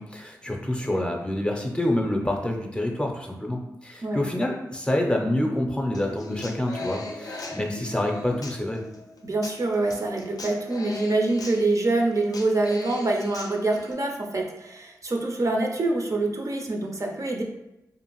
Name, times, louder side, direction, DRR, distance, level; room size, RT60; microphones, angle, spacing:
voice 1, 0.0-8.8, left 1 dB, 15° left, 1 dB, 0.6 m, -27 dB
Human voice / Acoustic guitar, 5.9-13.9, left 2 dB, 60° left, 0.5 m, -39 dB
voice 2, 9.2-17.4, right 2 dB, 50° right, 1 dB, 0.5 m, -25 dB
2.5 x 2.4 x 3.0 m, 0.92 s
cardioid pair, 40°, 7 cm